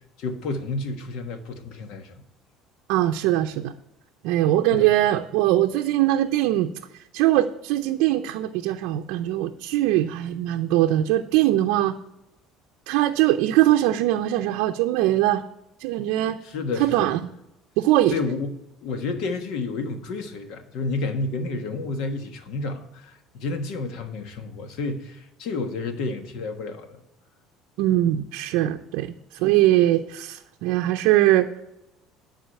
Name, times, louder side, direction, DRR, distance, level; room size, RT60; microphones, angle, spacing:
voice 1, 0.2-2.2 4.7-4.9 16.4-17.1 18.1-18.6 18.8-27.0 29.5-29.6, left 3 dB, 70° left, 1.4 m, -30 dB
voice 2, 2.9-3.7 4.2-6.7 7.1-11.9 12.9-15.4 15.8-16.4 16.8-17.2 17.8-18.2 27.8-31.5, right 14 dB, 80° right, 0.5 m, -21 dB
11.5 x 4.9 x 7.7 m
cardioid pair, 120°, 0 cm